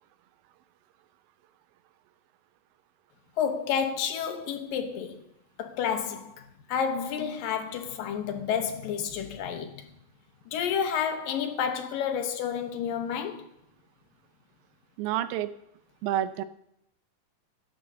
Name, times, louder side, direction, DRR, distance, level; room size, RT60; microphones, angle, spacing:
voice 1, 3.4-5.2 5.6-9.9 10.5-13.5, left 7 dB, 75° left, 2.7 m, -30 dB
voice 2, 15.0-15.5 16.0-16.4, right 12 dB, 85° right, 2.4 m, -28 dB
15.5 x 11.5 x 2.7 m
omnidirectional pair, 4.1 m